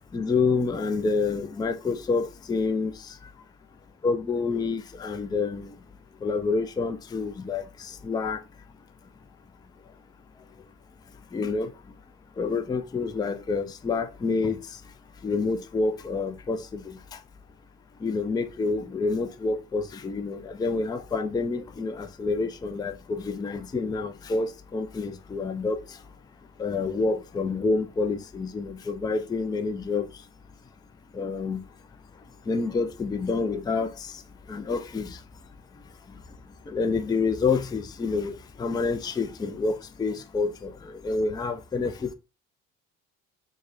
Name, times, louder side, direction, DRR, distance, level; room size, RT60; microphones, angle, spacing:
voice 1, 0.1-2.9 4.0-5.7 6.2-8.4 11.3-11.7 12.4-14.6 15.2-17.0 18.0-25.8 26.6-30.1 31.1-31.6 32.5-34.1 34.5-35.2 36.7-40.7 41.0-42.1, left 4 dB, 10° left, 0.4 m, -28 dB
5.9 x 2.1 x 2.5 m
figure-of-eight pair, 50°, 41 cm